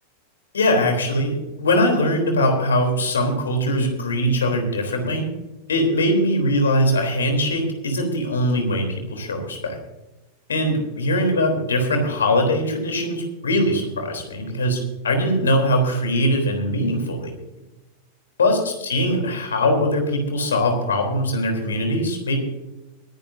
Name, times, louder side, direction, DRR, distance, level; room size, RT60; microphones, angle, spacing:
voice 1, 0.5-5.3 5.7-9.8 10.5-17.3 18.4-22.4, left 1 dB, 70° left, 4 dB, 3.5 m, -21 dB
24.0 x 10.5 x 2.7 m, 1.0 s
figure-of-eight pair, 90°, 0 cm